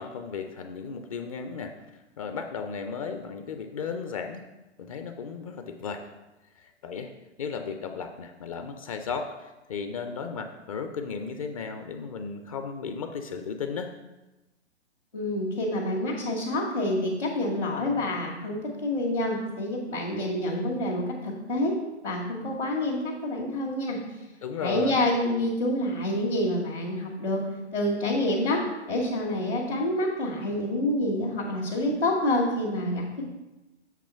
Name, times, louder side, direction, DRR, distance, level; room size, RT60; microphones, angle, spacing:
voice 1, 0.0-4.4 4.8-6.1 6.6-7.1 7.4-13.9 24.4-25.0, left 5 dB, 30° left, 7 dB, 0.5 m, -35 dB
voice 2, 15.1-21.7 22.0-24.0 24.6-27.4 27.7-28.6 28.9-33.3, left 1 dB, 80° left, -7 dB, 2.1 m, -27 dB
8.2 x 4.3 x 5.5 m, 1.0 s
figure-of-eight pair, 115°, 34 cm